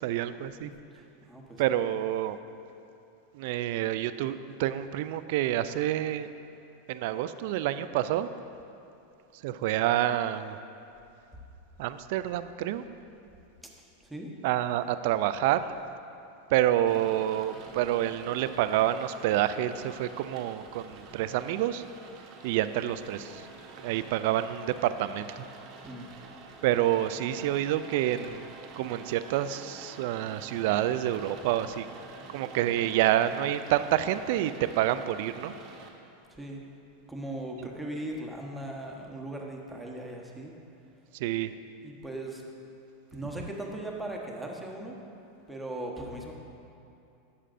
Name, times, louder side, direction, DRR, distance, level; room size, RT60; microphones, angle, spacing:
voice 1, 0.0-0.7 1.6-2.4 3.3-6.3 6.9-8.3 9.4-10.6 11.8-12.8 14.4-15.7 16.5-21.8 22.4-23.4 23.8-25.4 26.6-31.9 32.3-35.6 41.1-41.5, right 12 dB, 65° right, 12 dB, 0.3 m, -28 dB
voice 2, 0.6-1.9 13.6-13.7 14.0-14.3 25.8-26.1 36.3-36.7 37.1-40.5 41.8-42.4 43.1-45.0 45.5-46.3, right 1 dB, 5° right, -1 dB, 1.1 m, -39 dB
Rain, 16.9-35.9, right 3 dB, 50° right, 0.9 m, -48 dB
11.0 x 7.4 x 2.6 m, 2.7 s
hypercardioid pair, 110°, 0 cm